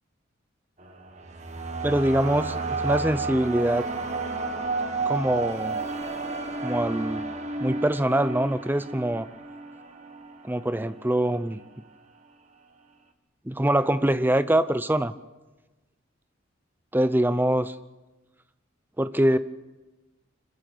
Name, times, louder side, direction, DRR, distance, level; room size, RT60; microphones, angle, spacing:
sound 1, 0.8-11.0, right 3 dB, 35° right, 1.6 m, -32 dB
voice 1, 1.8-3.9 5.0-5.8 6.6-7.3 7.6-9.3 10.4-11.6 13.5-15.1 16.9-17.7 19.0-19.4, right 1 dB, 10° right, 13 dB, 0.6 m, -24 dB
25.5 x 15.5 x 6.8 m, 1.1 s
head